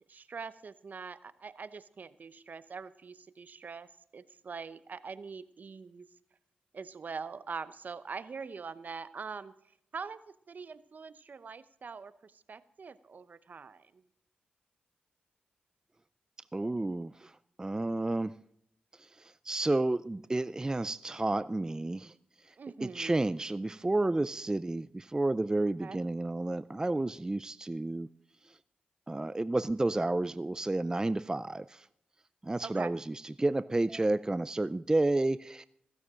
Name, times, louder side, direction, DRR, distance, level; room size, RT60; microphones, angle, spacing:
voice 1, 0.1-6.1 6.7-9.5 9.9-14.0 22.6-23.4 25.8-26.0 32.6-32.9, right 5 dB, 55° right, 15 dB, 0.8 m, -43 dB
voice 2, 16.5-17.3 17.6-18.4 19.5-22.1 22.8-28.1 29.1-31.9 32.4-35.6, right 2 dB, 20° right, 16 dB, 0.4 m, -31 dB
15.5 x 14.0 x 3.8 m, 0.74 s
supercardioid pair, 45°, 3 cm